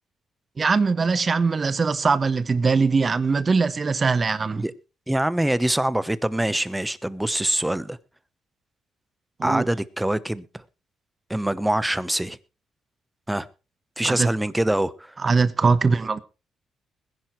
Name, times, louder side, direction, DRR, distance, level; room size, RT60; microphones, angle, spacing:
voice 1, 0.6-4.6 9.4-9.6 14.0-14.3 15.2-16.2, right 4 dB, 35° right, 1.1 m, -21 dB
voice 2, 5.1-8.0 9.4-10.6 11.3-12.4 13.3-13.5 14.0-15.2, right 1 dB, 5° right, 1.0 m, -24 dB
21.0 x 10.5 x 3.2 m
cardioid pair, 90°, 0 cm